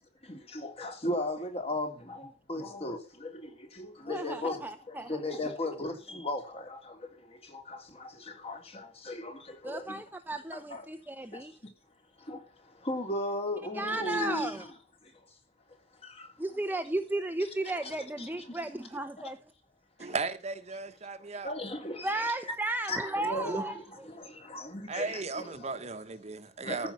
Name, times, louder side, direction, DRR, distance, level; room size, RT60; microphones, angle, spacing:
voice 1, 0.2-10.0 10.5-10.9 11.3-11.7 12.2-14.7 15.0-15.4 15.7-16.4 17.7-18.6 20.0-20.2 21.2-22.3 22.9-25.9 26.6-26.9, left 1 dB, 35° left, 2.9 m, -37 dB
voice 2, 4.1-5.2 9.6-11.5 13.7-14.6 16.4-19.4 20.0-20.1 22.0-23.7, right 2 dB, 10° right, 0.8 m, -34 dB
voice 3, 20.0-21.5 24.9-26.9, right 4 dB, 40° right, 1.1 m, -36 dB
14.5 x 5.6 x 8.2 m
head